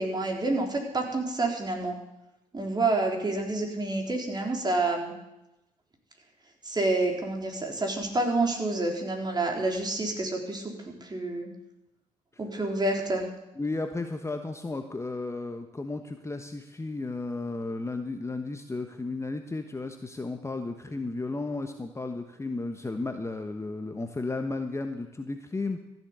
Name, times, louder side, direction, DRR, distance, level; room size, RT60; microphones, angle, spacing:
voice 1, 0.0-1.9 2.5-5.1 6.6-11.5 12.4-13.2, right 2 dB, 25° right, 1 dB, 3.7 m, -28 dB
voice 2, 13.6-25.8, left 3 dB, 15° left, 6 dB, 1.2 m, -34 dB
14.5 x 7.5 x 8.2 m, 0.92 s
hypercardioid pair, 50°, 16 cm